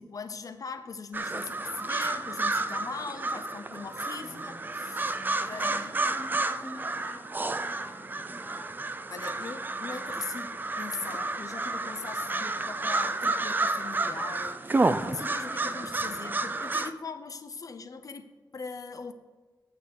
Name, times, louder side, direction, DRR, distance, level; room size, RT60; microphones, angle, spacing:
voice 1, 0.0-5.2 5.5-6.0 9.1-19.1, left 4 dB, 50° left, 10 dB, 0.7 m, -40 dB
sound 1, 1.1-16.9, right 2 dB, 25° right, 0.4 m, -31 dB
voice 2, 4.1-4.6 5.3-9.1, left 1 dB, 20° left, -5 dB, 1.3 m, -47 dB
8.6 x 6.5 x 6.9 m, 1.2 s
wide cardioid pair, 155°, 8 cm